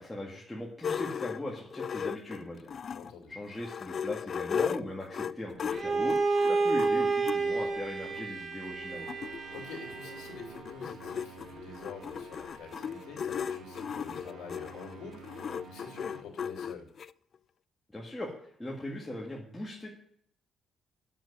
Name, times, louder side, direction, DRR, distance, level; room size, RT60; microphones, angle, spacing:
voice 1, 0.0-2.7 3.3-6.2 6.5-9.1 17.9-19.9, left 1 dB, 10° left, -4 dB, 2.0 m, -39 dB
sound 1, 0.8-3.1 3.5-7.4 8.2-8.3 8.6-8.7 8.8-17.1, left 7 dB, 50° left, 0.3 m, -36 dB
voice 2, 2.9-3.3 9.5-16.9, left 5 dB, 80° left, 0 dB, 2.7 m, -47 dB
Bowed string instrument, 5.7-10.5, right 3 dB, 45° right, 1.4 m, -30 dB
sound 2, 8.9-16.2, right 4 dB, 80° right, 2.0 m, -50 dB
7.6 x 7.4 x 8.5 m, 0.70 s
cardioid pair, 90°, 0 cm